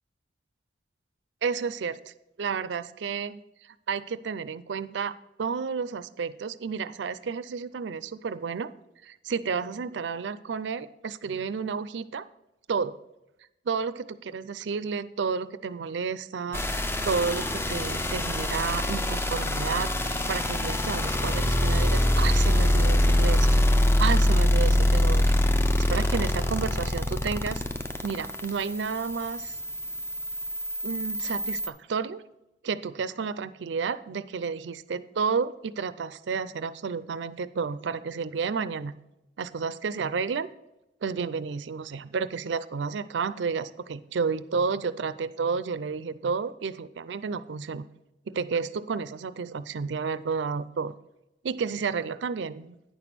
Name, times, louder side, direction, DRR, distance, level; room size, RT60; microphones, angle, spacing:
voice 1, 1.4-2.0 2.4-3.4 3.9-5.1 5.4-8.7 9.0-12.3 12.7-13.0 13.7-23.5 24.0-25.2 25.9-27.6 28.0-29.6 30.8-32.2 32.6-38.9 39.4-40.5 41.0-47.8 48.3-50.9 51.4-52.8, right 5 dB, 70° right, 15 dB, 0.4 m, -31 dB
sound 1, 16.5-31.7, left 1 dB, 15° left, 0.5 m, -24 dB
9.5 x 6.0 x 5.9 m, 0.94 s
head